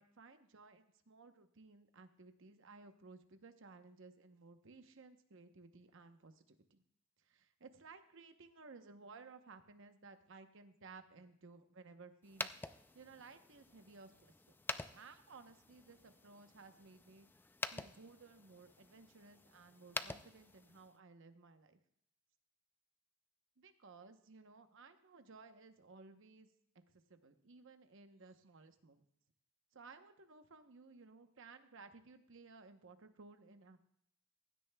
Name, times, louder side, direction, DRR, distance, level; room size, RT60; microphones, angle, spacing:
voice 1, 0.0-6.8 7.2-14.6 14.9-17.3 17.7-21.8 23.6-26.5 26.9-29.0 29.7-33.8, right 4 dB, 65° right, 8 dB, 0.9 m, -58 dB
sound 1, 12.2-21.0, left 3 dB, 10° left, 0.3 m, -48 dB
16.0 x 12.0 x 2.3 m, 0.72 s
head